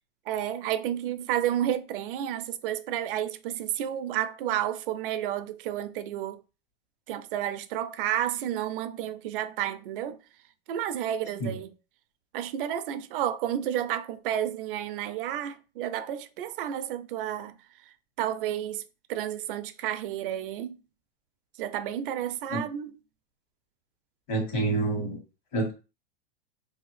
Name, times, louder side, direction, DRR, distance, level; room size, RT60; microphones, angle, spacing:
voice 1, 0.3-6.4 7.1-10.2 10.7-11.7 12.3-17.6 18.2-20.8 21.6-22.9, right 11 dB, 60° right, 0.4 m, -31 dB
voice 2, 24.3-25.2 25.5-25.7, right 2 dB, 45° left, 1.4 m, -27 dB
2.7 x 2.4 x 3.1 m
supercardioid pair, 145°, 32 cm